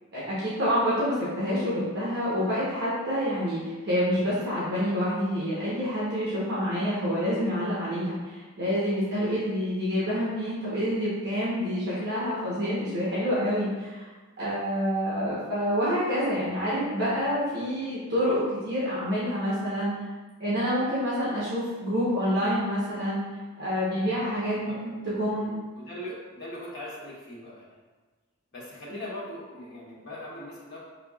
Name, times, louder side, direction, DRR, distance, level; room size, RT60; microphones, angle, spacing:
voice 1, 0.1-14.1 14.4-19.9 20.4-23.2 23.6-25.5 28.9-29.0, equal, 55° right, -9 dB, 1.0 m, -27 dB
voice 2, 25.8-27.7 28.5-30.8, left 1 dB, 55° left, -7 dB, 1.3 m, -40 dB
5.8 x 2.8 x 2.3 m, 1.3 s
head